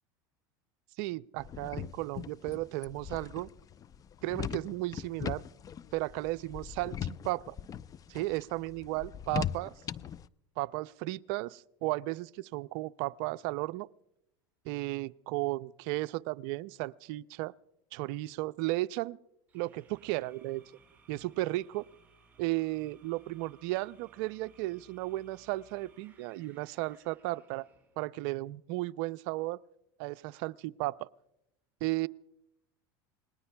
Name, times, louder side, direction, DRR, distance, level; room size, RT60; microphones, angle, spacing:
voice 1, 1.0-3.5 4.2-5.4 5.9-7.6 8.1-9.7 10.6-13.9 14.7-17.5 17.9-19.2 19.5-20.6 21.1-21.9 22.4-27.7 28.0-29.6 30.0-31.1 31.8-32.1, right 19 dB, 65° right, 0.5 m, -34 dB
sound 1, 1.4-10.3, left 9 dB, 30° left, 0.5 m, -40 dB
sound 2, 19.5-28.0, right 5 dB, 15° right, 8.0 m, -63 dB
28.0 x 20.5 x 2.3 m
hypercardioid pair, 95°, 12 cm